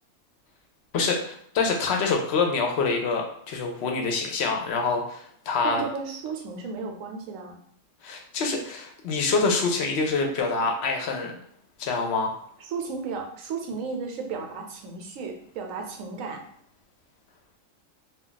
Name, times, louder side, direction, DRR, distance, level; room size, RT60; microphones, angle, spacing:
voice 1, 0.9-5.8 8.0-11.3 11.8-12.4, left 4 dB, 65° left, 2 dB, 0.7 m, -26 dB
voice 2, 5.6-7.6 12.6-16.4, right 5 dB, 80° right, 3 dB, 1.0 m, -34 dB
2.3 x 2.3 x 3.8 m, 0.65 s
omnidirectional pair, 1.4 m